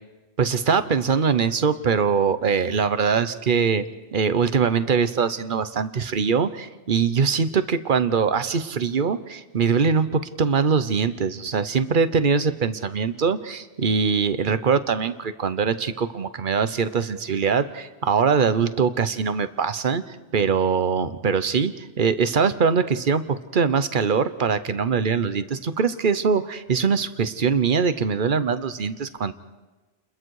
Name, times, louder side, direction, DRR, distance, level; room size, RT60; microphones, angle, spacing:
voice 1, 0.4-3.8 4.1-29.3, right 6 dB, 55° right, 12 dB, 1.1 m, -22 dB
30.0 x 21.5 x 4.8 m, 1.2 s
omnidirectional pair, 1.1 m